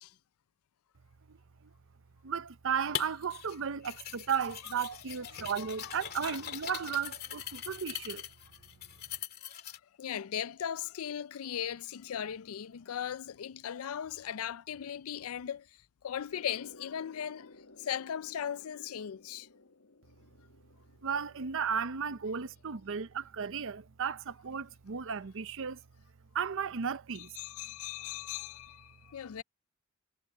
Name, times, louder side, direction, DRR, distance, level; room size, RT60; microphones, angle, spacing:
voice 1, 2.3-7.4 7.7-8.2 21.0-23.1 23.4-24.2 24.4-25.7 26.4-27.2, right 7 dB, 60° right, 0.7 m, -34 dB
sound 1, 2.9-3.6 3.8-9.8, left 10 dB, 45° left, 2.3 m, -42 dB
voice 2, 5.3-5.8 9.4-9.5 10.0-15.8 16.0-17.5 17.8-19.5 27.4-29.4, left 9 dB, 70° left, 0.4 m, -38 dB
sound 2, 16.3-23.5, left 2 dB, 90° left, 2.4 m, -57 dB
head